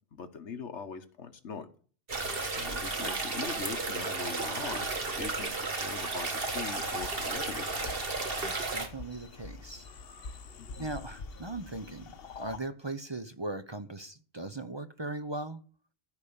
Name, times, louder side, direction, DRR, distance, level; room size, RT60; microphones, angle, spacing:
voice 1, 0.1-1.7 2.5-4.9 5.2-8.0 10.6-10.9, left 5 dB, 90° left, 1.5 m, -41 dB
sound 1, 2.1-8.9, right 3 dB, 55° right, 1.9 m, -33 dB
sound 2, 6.4-12.6, left 5 dB, 60° left, 1.1 m, -45 dB
voice 2, 8.4-9.9 10.8-15.6, right 2 dB, 25° right, 0.7 m, -39 dB
14.5 x 5.2 x 8.6 m
omnidirectional pair, 1.1 m